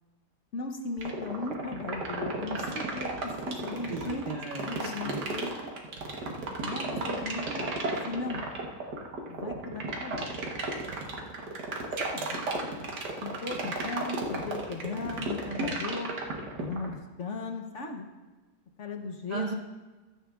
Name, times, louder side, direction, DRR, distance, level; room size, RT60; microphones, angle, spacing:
voice 1, 0.5-4.2 4.6-5.7 6.6-7.7 8.1-8.4 9.3-10.3 12.0-12.5 13.2-16.1 16.6-18.0 18.8-19.5, left 3 dB, 50° left, 4 dB, 1.1 m, -37 dB
sound 1, 1.0-16.9, right 3 dB, 75° right, 1.8 m, -33 dB
voice 2, 3.9-5.2 19.3-19.5, right 3 dB, 50° right, 1 dB, 0.4 m, -35 dB
15.5 x 12.5 x 2.4 m, 1.2 s
omnidirectional pair, 1.8 m